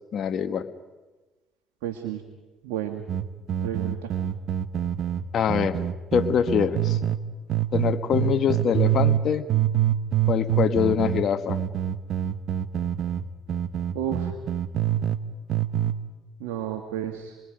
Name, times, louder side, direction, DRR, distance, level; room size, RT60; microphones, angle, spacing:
voice 1, 0.1-0.7 5.3-5.8 6.1-7.0 7.7-9.5 10.3-11.6, left 8 dB, 55° left, 8 dB, 1.4 m, -24 dB
voice 2, 1.8-2.2 2.6-3.0 3.6-4.1 13.9-14.3 16.4-17.4, right 11 dB, 85° right, 5 dB, 1.6 m, -31 dB
sound 1, 3.1-7.2 7.5-9.2 9.5-15.2 15.5-16.0, right 11 dB, 60° right, 1.1 m, -25 dB
28.0 x 21.0 x 5.1 m, 1.2 s
supercardioid pair, 70°, 0 cm